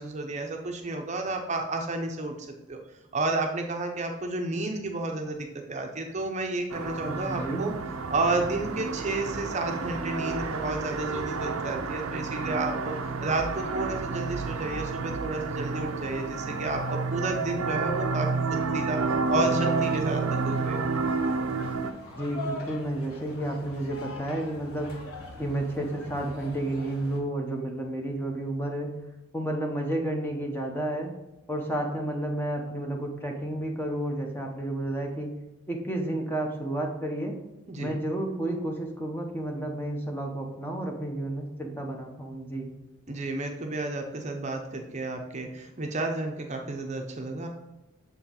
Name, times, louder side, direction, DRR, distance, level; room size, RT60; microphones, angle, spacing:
voice 1, 0.0-2.8 3.1-7.7 8.1-12.9 13.2-20.8 37.7-38.0 43.1-47.5, right 2 dB, 35° right, 3 dB, 0.6 m, -31 dB
sound 1, 6.7-21.9, right 4 dB, 85° right, 0.6 m, -30 dB
voice 2, 7.0-7.7 22.1-24.9 25.4-28.9 29.3-31.1 31.5-35.3 35.7-37.4 37.8-42.7, right 1 dB, 10° left, 1 dB, 0.7 m, -31 dB
sound 2, 19.2-27.2, left 2 dB, 85° left, 1.2 m, -43 dB
6.9 x 4.4 x 3.8 m, 0.99 s
head